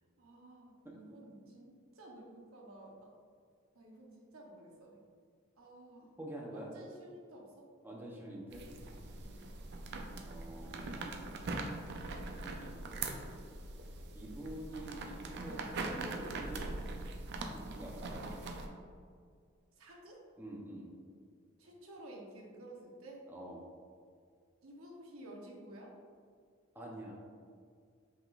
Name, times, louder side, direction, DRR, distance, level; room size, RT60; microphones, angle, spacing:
voice 1, 0.2-3.1 3.7-5.0 5.6-6.1 6.5-7.7 9.2-9.5 19.8-20.2 21.6-23.3 24.6-25.9, right 1 dB, 80° right, -1 dB, 0.8 m, -53 dB
voice 2, 6.2-6.7 7.8-8.7 10.2-10.9 12.3-13.4 14.1-16.8 17.5-18.7 20.4-20.9 23.3-23.7 26.7-27.1, right 1 dB, 10° right, -3 dB, 0.7 m, -47 dB
sound 1, 8.5-18.7, right 3 dB, 55° right, 0.4 m, -42 dB
5.6 x 3.6 x 2.4 m, 2.1 s
head